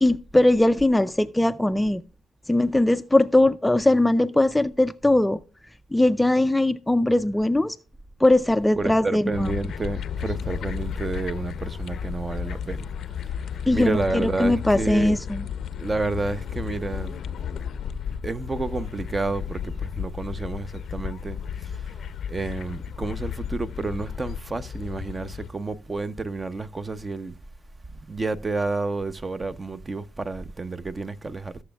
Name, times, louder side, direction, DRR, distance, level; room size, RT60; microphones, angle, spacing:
voice 1, 0.0-2.0 2.5-5.4 5.9-7.8 8.2-9.5 13.7-15.5, left 1 dB, 10° left, 0.4 m, -20 dB
voice 2, 8.8-12.9 13.7-15.2 15.8-17.1 18.2-21.9 22.3-27.4 28.1-31.6, right 3 dB, 25° right, 0.7 m, -30 dB
sound 1, 9.3-25.5, left 8 dB, 65° left, 0.6 m, -33 dB
17.0 x 7.0 x 2.3 m
cardioid pair, 90°, 0 cm